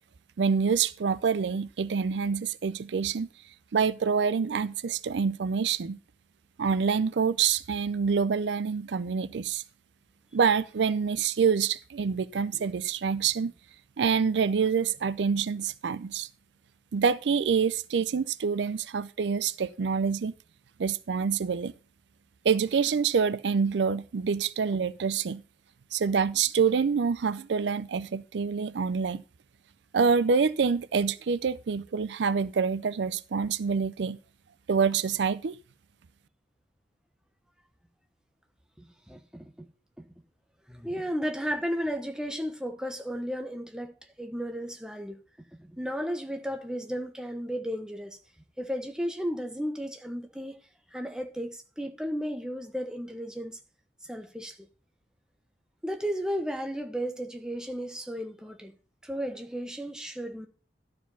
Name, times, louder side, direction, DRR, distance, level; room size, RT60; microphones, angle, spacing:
voice 1, 0.4-3.3 3.7-6.0 6.6-9.6 10.3-13.5 14.0-16.3 16.9-20.3 20.8-21.7 22.4-25.4 25.9-29.2 29.9-34.2 34.7-35.6, right 6 dB, 80° right, 0.5 m, -26 dB
voice 2, 38.8-39.7 40.0-40.1 40.7-45.2 45.6-48.2 48.6-50.6 50.9-53.6 54.0-54.7 55.8-58.7 59.0-60.5, equal, 5° right, 1.1 m, -34 dB
12.0 x 4.9 x 5.5 m
head